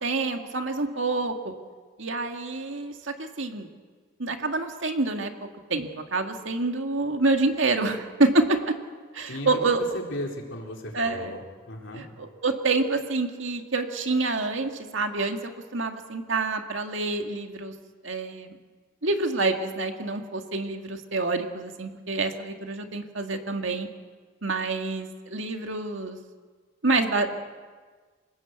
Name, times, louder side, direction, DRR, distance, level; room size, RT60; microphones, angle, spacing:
voice 1, 0.0-1.5 2.0-3.7 4.2-8.8 9.1-9.8 10.9-11.3 11.9-17.7 18.0-18.6 19.0-23.9 24.4-26.2 26.8-27.4, right 3 dB, 65° right, 4 dB, 2.2 m, -27 dB
voice 2, 9.3-9.6 9.9-12.0, left 1 dB, 65° left, 0 dB, 4.3 m, -36 dB
27.5 x 18.5 x 8.3 m, 1.5 s
head